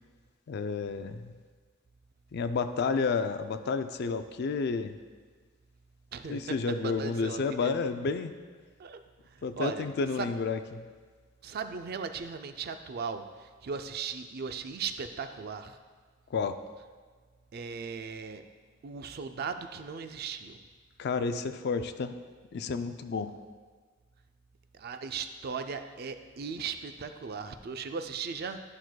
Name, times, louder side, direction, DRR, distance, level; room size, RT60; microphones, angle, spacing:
voice 1, 0.5-1.3 2.3-5.0 6.3-8.3 9.4-10.8 16.3-16.6 21.0-22.1 22.5-23.3, left 4 dB, 55° left, 10 dB, 0.4 m, -31 dB
voice 2, 6.1-7.7 8.8-9.0 9.3-9.9 10.2-10.3 11.4-15.8 17.5-18.4 18.8-20.6 24.7-28.6, right 5 dB, 50° right, 8 dB, 0.4 m, -37 dB
11.5 x 6.0 x 2.2 m, 1.5 s
head